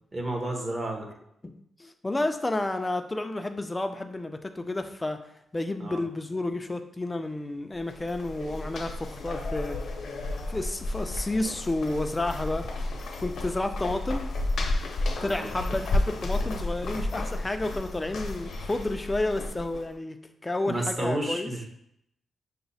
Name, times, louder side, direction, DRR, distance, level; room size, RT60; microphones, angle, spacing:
voice 1, 0.1-1.1 5.8-6.0 15.2-15.5 20.7-21.6, right 1 dB, 25° right, 2 dB, 0.8 m, -31 dB
voice 2, 1.8-5.2 5.5-9.8 10.5-12.7 13.2-14.3 15.2-20.2 20.4-21.5, left 2 dB, 15° left, 6 dB, 0.3 m, -31 dB
sound 1, 7.8-19.9, left 2 dB, 65° left, 0.7 m, -32 dB
5.7 x 2.0 x 4.0 m, 0.75 s
wide cardioid pair, 145°, 0 cm